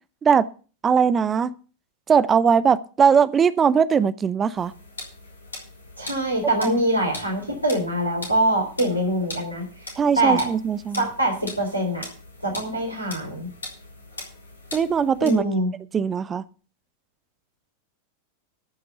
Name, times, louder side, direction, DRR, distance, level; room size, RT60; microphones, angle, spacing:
voice 1, 0.8-1.6 2.1-4.7 6.6-6.7 10.0-11.1 14.7-15.4 15.9-16.4, right 6 dB, 20° right, 0.8 m, -20 dB
sound 1, 4.5-15.4, left 2 dB, 75° left, 3.8 m, -41 dB
voice 2, 6.0-9.6 10.2-10.5 11.0-12.1 12.4-13.5 15.2-15.7, right 1 dB, 90° left, 3.6 m, -24 dB
13.5 x 5.8 x 6.8 m
figure-of-eight pair, 90°, 0 cm